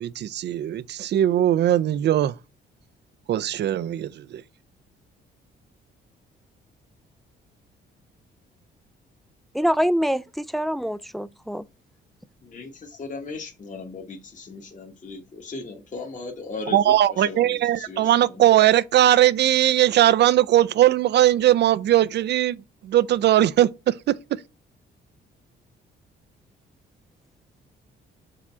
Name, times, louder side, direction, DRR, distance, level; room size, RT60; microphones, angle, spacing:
voice 1, 0.0-2.3 3.3-4.4 16.7-24.1, right 12 dB, 60° right, 0.5 m, -20 dB
voice 2, 9.5-11.6, equal, ahead, 0.3 m, -25 dB
voice 3, 12.4-18.4, left 3 dB, 40° left, 1.3 m, -37 dB
4.9 x 3.5 x 5.6 m
cardioid pair, 90°, 20 cm